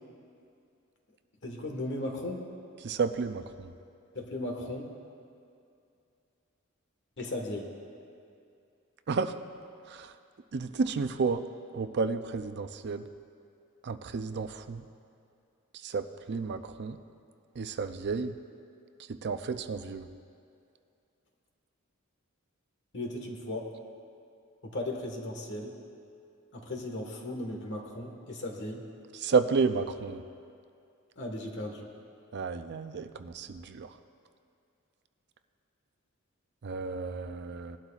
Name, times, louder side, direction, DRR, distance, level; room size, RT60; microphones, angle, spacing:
voice 1, 1.4-2.4 4.1-4.9 7.2-7.7 22.9-23.7 24.6-25.8 26.5-28.8 31.2-31.9, left 1 dB, 55° left, 2 dB, 1.5 m, -36 dB
voice 2, 2.8-3.7 9.1-9.3 9.9-10.1 10.5-11.4 11.7-13.0 13.8-14.8 15.8-17.0 17.6-18.3 19.2-20.0 29.2-30.2 32.3-33.9 36.6-37.8, right 4 dB, 55° right, 9 dB, 0.5 m, -31 dB
19.0 x 12.0 x 2.4 m, 2.5 s
head